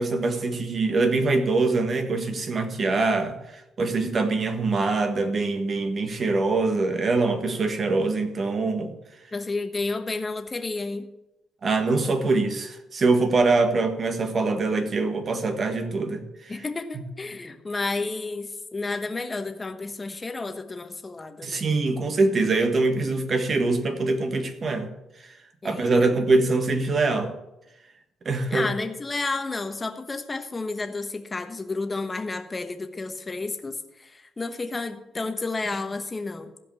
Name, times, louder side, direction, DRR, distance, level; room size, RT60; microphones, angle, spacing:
voice 1, 0.0-8.9 11.6-16.5 21.4-24.9 25.2-25.4 25.6-27.3 28.2-28.7, right 3 dB, 40° right, 7 dB, 1.5 m, -24 dB
voice 2, 9.3-11.1 16.5-21.6 25.6-26.1 28.5-36.5, left 3 dB, 20° left, 7 dB, 1.2 m, -31 dB
15.0 x 5.3 x 6.9 m, 0.93 s
cardioid pair, 110°, 0 cm